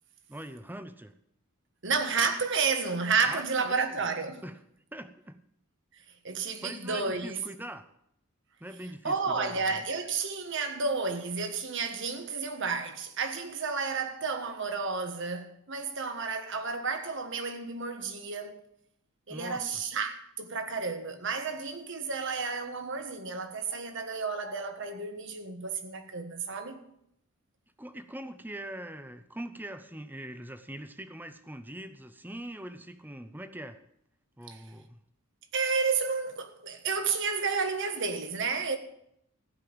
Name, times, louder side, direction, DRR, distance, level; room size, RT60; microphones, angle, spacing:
voice 1, 0.3-1.1 3.3-3.8 4.4-4.6 4.9-5.4 6.6-7.8 8.6-9.8 19.3-19.6 27.8-33.8 34.4-35.0, right 1 dB, 10° right, 0.8 m, -42 dB
voice 2, 1.8-4.4 6.2-7.4 9.0-18.6 19.3-26.8 34.5-34.6 35.5-38.8, right 4 dB, 55° right, 1.5 m, -31 dB
15.0 x 5.5 x 8.8 m
head